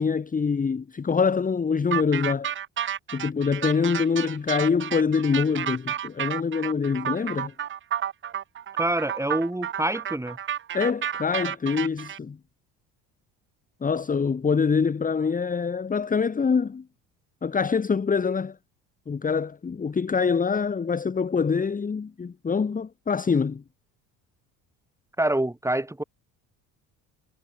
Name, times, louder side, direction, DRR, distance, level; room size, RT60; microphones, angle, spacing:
voice 1, 0.0-2.5 3.1-7.5 10.7-12.4 13.8-16.8 17.4-18.6 19.1-23.6, left 5 dB, 20° left, 1.1 m, -25 dB
sound 1, 1.9-12.2, right 9 dB, 30° right, 0.6 m, -31 dB
voice 2, 8.8-10.4 25.2-26.0, right 1 dB, 5° right, 3.1 m, -26 dB
supercardioid pair, 75°, 39 cm